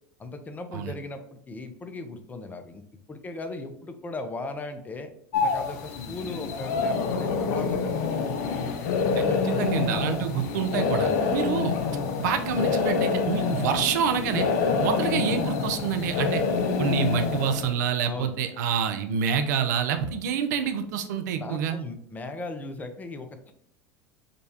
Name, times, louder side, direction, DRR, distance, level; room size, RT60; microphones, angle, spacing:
voice 1, 0.2-2.8 3.1-5.1 5.4-8.6 9.2-9.5 18.0-18.3 21.4-23.5, left 3 dB, 15° left, 6 dB, 0.5 m, -37 dB
sound 1, 5.3-17.7, left 5 dB, 70° left, 0.6 m, -27 dB
voice 2, 9.2-11.8 12.2-14.5 14.8-16.4 16.8-21.8, right 7 dB, 75° right, 8 dB, 0.5 m, -27 dB
5.2 x 2.3 x 2.7 m, 0.68 s
hypercardioid pair, 90°, 9 cm